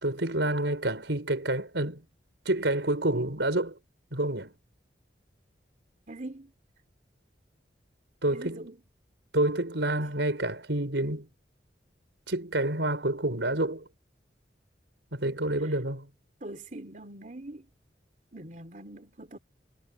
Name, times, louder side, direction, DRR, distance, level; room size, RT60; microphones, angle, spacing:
voice 1, 0.0-2.0 2.5-3.8 4.1-4.5 8.2-8.7 9.3-11.3 12.3-13.9 15.1-16.1, right 1 dB, 90° right, 5.2 m, -28 dB
voice 2, 6.1-6.5 8.3-8.8 15.6-15.8 16.4-17.7 18.3-19.4, right 1 dB, 45° right, 3.3 m, -43 dB
head